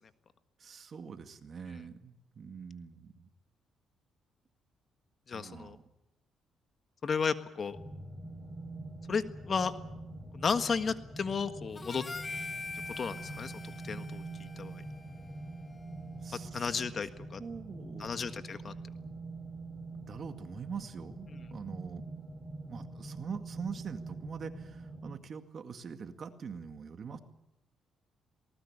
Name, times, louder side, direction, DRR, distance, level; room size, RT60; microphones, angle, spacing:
voice 1, 0.6-3.3 5.3-5.8 16.2-16.7 17.2-18.2 20.1-22.0 22.7-27.2, right 6 dB, 50° right, 8 dB, 2.1 m, -43 dB
voice 2, 5.3-5.8 7.0-7.8 9.1-9.7 10.3-12.0 12.9-13.5 13.8-14.2 14.6-14.8 16.5-17.4 18.0-18.7, left 5 dB, 45° left, 10 dB, 1.6 m, -33 dB
sound 1, 7.7-25.2, right 2 dB, 5° left, 3.7 m, -45 dB
Harmonica, 11.8-16.2, left 3 dB, 25° left, 1.5 m, -44 dB
19.5 x 19.0 x 9.8 m, 0.91 s
cardioid pair, 90°, 0 cm